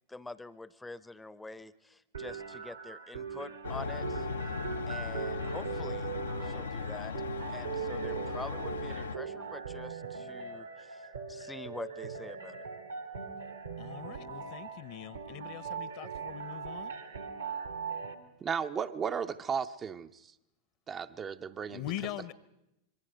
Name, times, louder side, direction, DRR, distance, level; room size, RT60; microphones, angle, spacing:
voice 1, 0.1-4.3 4.9-6.1 6.4-7.1 7.5-12.6, left 2 dB, 5° left, 17 dB, 0.8 m, -46 dB
sound 1, 2.1-18.1, right 6 dB, 75° right, 2.0 m, -40 dB
sound 2, 3.6-9.2, left 5 dB, 70° left, 0.7 m, -37 dB
voice 2, 13.8-17.0 21.7-22.3, left 13 dB, 45° left, 18 dB, 1.0 m, -42 dB
voice 3, 18.4-20.1 20.9-21.8, right 7 dB, 25° right, 8 dB, 0.7 m, -34 dB
26.0 x 23.5 x 5.2 m, 0.86 s
figure-of-eight pair, 90°, 0 cm